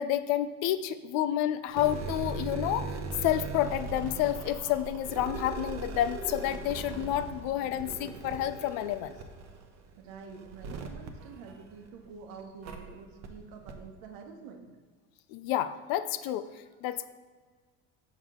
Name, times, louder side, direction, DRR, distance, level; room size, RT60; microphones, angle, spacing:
voice 1, 0.0-2.9 3.2-9.2 15.3-16.5 16.8-17.1, left 12 dB, 65° left, 13 dB, 0.5 m, -29 dB
sound 1, 1.7-12.1 12.6-12.8 13.2-13.3 13.7-13.8, right 4 dB, 45° right, 0.8 m, -39 dB
voice 2, 10.0-14.7, right 5 dB, 75° right, 4 dB, 1.0 m, -47 dB
6.6 x 4.7 x 3.7 m, 1.5 s
supercardioid pair, 95°, 37 cm